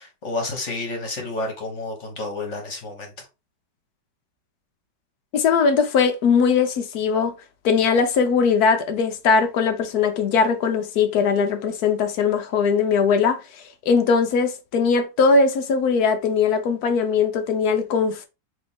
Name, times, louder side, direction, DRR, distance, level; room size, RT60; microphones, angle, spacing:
voice 1, 0.0-3.3, left 2 dB, 40° left, 1.3 m, -30 dB
voice 2, 5.3-7.3 7.6-13.4 13.9-18.3, left 5 dB, 65° left, 1.0 m, -20 dB
4.1 x 3.1 x 3.5 m
omnidirectional pair, 2.1 m